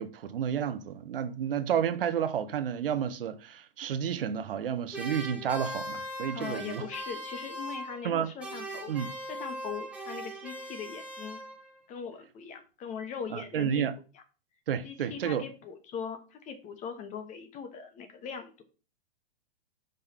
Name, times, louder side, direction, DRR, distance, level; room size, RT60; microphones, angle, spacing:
voice 1, 0.0-6.8 8.0-8.3 8.9-9.1 13.3-13.9 14.7-15.5, right 8 dB, 70° right, 0.8 m, -31 dB
sound 1, 4.9-8.1 8.4-11.8, right 1 dB, 5° right, 1.5 m, -40 dB
voice 2, 6.3-8.9 9.3-11.4 11.9-13.8 14.1-14.2 14.8-18.6, left 7 dB, 25° left, 1.1 m, -40 dB
5.3 x 3.8 x 5.7 m
hypercardioid pair, 125°, 29 cm